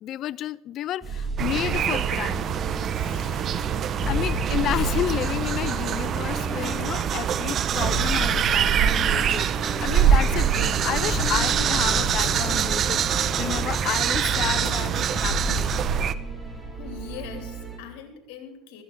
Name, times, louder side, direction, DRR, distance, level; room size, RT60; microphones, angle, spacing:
voice 1, 0.0-2.5 4.1-9.5 9.8-15.7, left 12 dB, 50° left, 0.4 m, -31 dB
sound 1, 1.0-17.8, equal, 5° right, 2.9 m, -33 dB
sound 2, 1.4-16.1, right 8 dB, 45° right, 0.6 m, -24 dB
voice 2, 2.9-3.8 16.8-18.8, left 8 dB, 70° left, 2.9 m, -42 dB
16.0 x 13.5 x 3.9 m
supercardioid pair, 95°, 0 cm